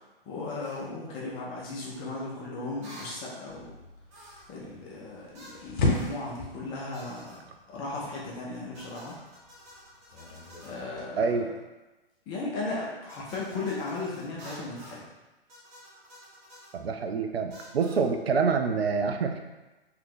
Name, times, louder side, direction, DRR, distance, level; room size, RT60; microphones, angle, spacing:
voice 1, 0.0-3.7 4.5-7.4 7.7-9.1 10.6-11.3 12.3-15.0, left 3 dB, 15° left, -4 dB, 0.4 m, -36 dB
sound 1, 0.6-0.9 2.8-3.2 4.1-4.6 5.3-5.6 5.9-6.2 6.9-7.4 8.7-10.9 13.1-15.1 15.5-16.8 17.5-18.1, equal, 20° right, 1.0 m, -50 dB
sound 2, 3.5-11.0, left 2 dB, 55° left, 0.9 m, -35 dB
voice 2, 11.2-11.5 16.7-19.4, right 5 dB, 80° right, 5 dB, 0.5 m, -26 dB
2.9 x 2.5 x 3.7 m, 1.1 s
figure-of-eight pair, 115°, 30 cm